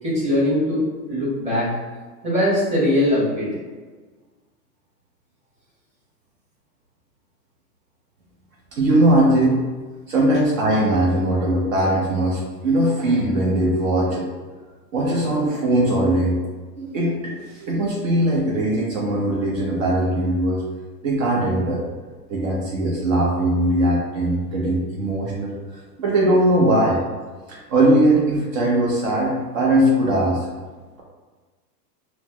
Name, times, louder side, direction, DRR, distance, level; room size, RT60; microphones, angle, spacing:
voice 1, 0.0-1.8 2.2-3.5, left 1 dB, 15° right, -9 dB, 1.1 m, -21 dB
voice 2, 8.7-9.6 10.1-14.3 14.9-16.4 16.8-20.6 21.0-21.8 22.3-27.0 27.5-30.5, right 1 dB, 55° right, -4 dB, 0.8 m, -20 dB
4.2 x 2.0 x 2.2 m, 1.4 s
hypercardioid pair, 140°, 48 cm